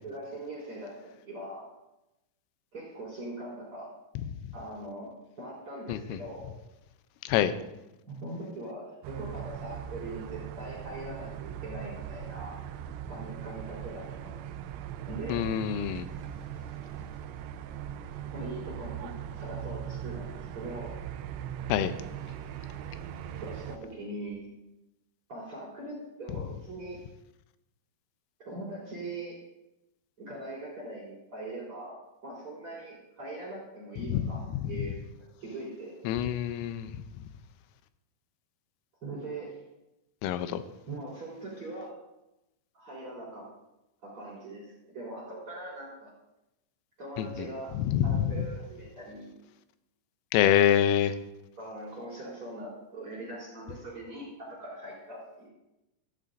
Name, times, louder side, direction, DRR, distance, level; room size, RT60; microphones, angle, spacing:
voice 1, 0.0-0.9 1.3-1.7 2.7-3.9 4.5-6.5 8.1-12.6 13.1-14.4 15.1-15.5 18.3-21.0 23.4-24.5 25.3-27.0 28.4-29.4 30.2-35.0 35.4-36.0 39.0-39.6 40.9-42.0 42.7-43.5 44.0-46.1 47.0-47.7 48.0-49.3 51.6-55.5, right 1 dB, 30° right, -4 dB, 4.2 m, -41 dB
sound 1, 9.0-23.8, right 10 dB, 85° right, 2.6 m, -40 dB
voice 2, 15.3-16.1 21.7-21.9 34.1-34.3 36.1-36.9 40.2-40.6 47.2-47.3 47.8-48.3 50.3-51.2, left 11 dB, 90° left, 10 dB, 3.2 m, -25 dB
15.5 x 14.5 x 2.6 m, 0.93 s
omnidirectional pair, 5.8 m